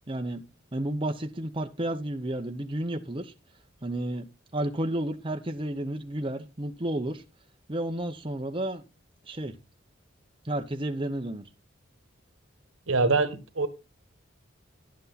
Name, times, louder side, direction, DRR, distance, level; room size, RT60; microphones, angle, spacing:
voice 1, 0.1-0.4 0.7-3.3 3.8-4.2 4.5-7.2 7.7-8.8 9.3-9.5 10.4-11.4, right 1 dB, 25° right, 0.8 m, -31 dB
voice 2, 12.9-13.7, right 3 dB, 75° right, 1.5 m, -24 dB
11.5 x 8.3 x 4.1 m
head